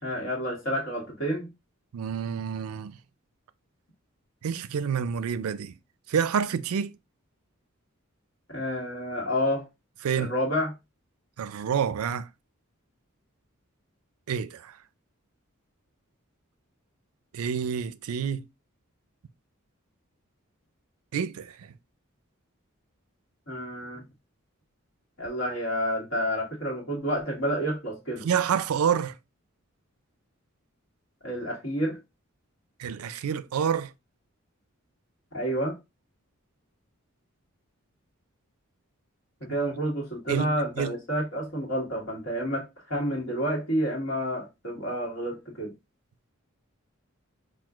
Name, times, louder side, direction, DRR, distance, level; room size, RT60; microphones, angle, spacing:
voice 1, 0.0-1.5 8.5-9.6 10.2-10.7 23.5-24.0 25.2-28.3 31.2-32.0 35.3-35.8 39.4-45.7, equal, 65° left, 1.6 m, -29 dB
voice 2, 1.9-2.9 4.4-5.7 6.1-6.9 10.0-10.3 11.4-12.3 14.3-14.7 17.3-18.4 21.1-21.6 28.2-29.1 32.8-33.9 40.3-40.5 40.8-40.9, right 7 dB, 90° right, 0.4 m, -28 dB
5.9 x 2.5 x 2.4 m
head